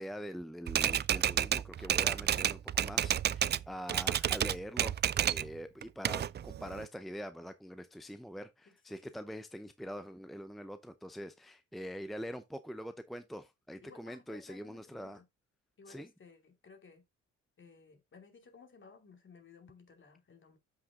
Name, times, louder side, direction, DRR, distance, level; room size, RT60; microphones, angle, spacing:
voice 1, 0.0-15.2 15.9-16.1, equal, ahead, 0.7 m, -44 dB
Typewriter, 0.7-3.6 3.9-5.5 5.8-6.9, right 10 dB, 35° right, 0.4 m, -30 dB
voice 2, 8.7-9.3 13.8-15.2 15.8-17.0 17.6-20.6, left 4 dB, 40° left, 2.8 m, -58 dB
7.7 x 5.9 x 3.7 m
cardioid pair, 90°, 30 cm